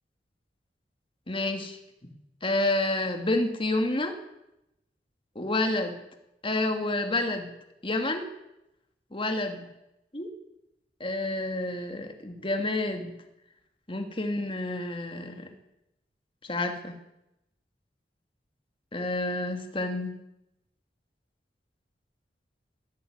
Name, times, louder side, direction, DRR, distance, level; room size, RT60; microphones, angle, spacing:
voice 1, 1.3-1.8 2.0-2.1 2.4-4.2 5.4-6.0 6.4-7.5 7.8-8.3 9.1-9.7 10.1-10.3 11.0-13.2 13.9-15.5 16.4-17.0 18.9-20.1, left 2 dB, 30° left, 6 dB, 2.5 m, -29 dB
21.5 x 14.0 x 9.6 m, 0.88 s
head